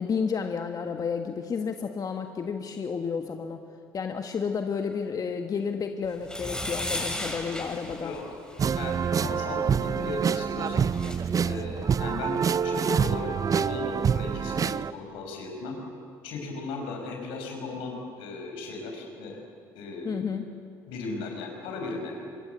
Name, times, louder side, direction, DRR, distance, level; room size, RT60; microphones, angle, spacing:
voice 1, 0.0-3.6 3.9-8.2 20.0-20.4, left 6 dB, 45° left, 5 dB, 1.6 m, -31 dB
sound 1, 6.2-8.8 10.5-10.6 10.8-11.2, left 1 dB, 10° left, 6.6 m, -35 dB
voice 2, 7.8-8.2 8.8-10.9 11.4-15.8 16.2-19.4 19.7-20.1 20.9-22.3, left 3 dB, 75° left, 2 dB, 5.7 m, -36 dB
sound 2, 8.6-14.9, right 7 dB, 40° right, 0.6 m, -26 dB
26.5 x 22.5 x 8.2 m, 2.4 s
hypercardioid pair, 60°, 9 cm